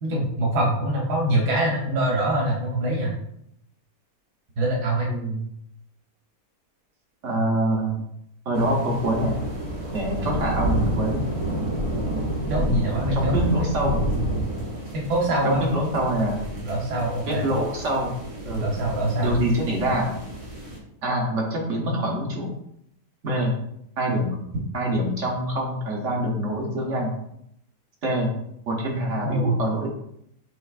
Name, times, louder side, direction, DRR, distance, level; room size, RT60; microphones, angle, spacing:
voice 1, 0.0-3.1 4.6-5.1 12.5-13.8 14.9-15.6 16.6-17.5 18.6-19.3 29.2-29.6, right 1 dB, 90° right, -2 dB, 1.6 m, -24 dB
voice 2, 5.1-5.4 7.2-8.0 8.4-9.4 9.9-11.2 12.6-14.0 15.4-16.4 17.3-18.1 18.4-18.7 19.2-20.1 21.0-22.5 23.2-23.5 24.0-24.4 24.7-27.1 28.0-28.3 28.7-29.9, right 1 dB, 55° right, -1 dB, 1.2 m, -25 dB
sound 1, 8.5-20.8, right 1 dB, 25° right, 0.9 m, -29 dB
6.8 x 3.2 x 2.4 m, 0.75 s
omnidirectional pair, 1.6 m